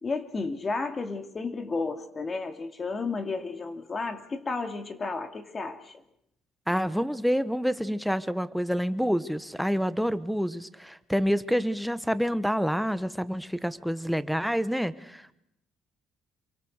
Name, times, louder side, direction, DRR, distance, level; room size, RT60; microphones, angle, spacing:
voice 1, 0.0-6.0, left 3 dB, 30° left, 7 dB, 2.5 m, -32 dB
voice 2, 6.7-15.3, equal, ahead, 12 dB, 1.2 m, -28 dB
27.5 x 23.5 x 6.6 m, 0.79 s
cardioid pair, 110°, 0 cm